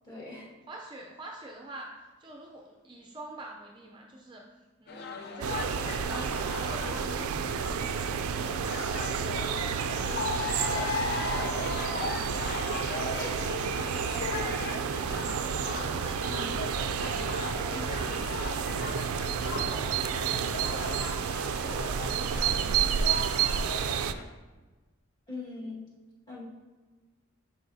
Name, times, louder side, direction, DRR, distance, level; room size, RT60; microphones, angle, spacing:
voice 1, 0.0-0.5 16.3-16.5 25.3-25.8 26.3-26.5, left 3 dB, 20° left, -7 dB, 1.7 m, -40 dB
voice 2, 0.7-1.9 2.2-4.5 4.8-14.9 15.5-23.2, right 1 dB, 20° right, 0 dB, 0.5 m, -47 dB
sound 1, 4.9-24.2, left 3 dB, 45° left, 0.5 m, -37 dB
sound 2, 5.4-24.1, right 7 dB, 80° right, 0.3 m, -30 dB
10.0 x 4.8 x 2.7 m, 1.3 s
head